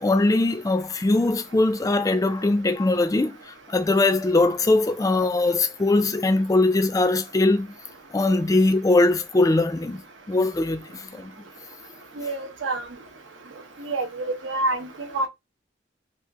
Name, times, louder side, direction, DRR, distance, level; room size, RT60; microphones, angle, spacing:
voice 1, 0.0-7.7 8.1-10.0 10.3-11.3, left 2 dB, 20° left, 0.3 m, -21 dB
voice 2, 12.2-12.8 13.9-14.9 15.1-15.3, right 2 dB, 90° right, 0.8 m, -27 dB
2.8 x 2.4 x 3.5 m
head